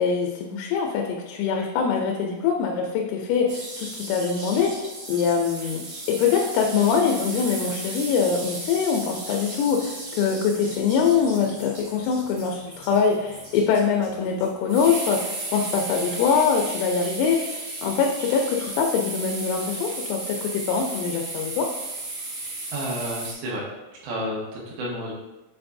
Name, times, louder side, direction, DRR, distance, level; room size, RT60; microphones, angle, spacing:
voice 1, 0.0-5.8 6.1-21.7, left 6 dB, 85° left, 1 dB, 3.1 m, -23 dB
sound 1, 3.5-23.3, right 2 dB, 55° right, 2.3 m, -35 dB
voice 2, 22.7-23.6 24.0-25.1, equal, 80° right, -4 dB, 3.6 m, -30 dB
7.7 x 4.7 x 2.6 m, 1.1 s
omnidirectional pair, 5.9 m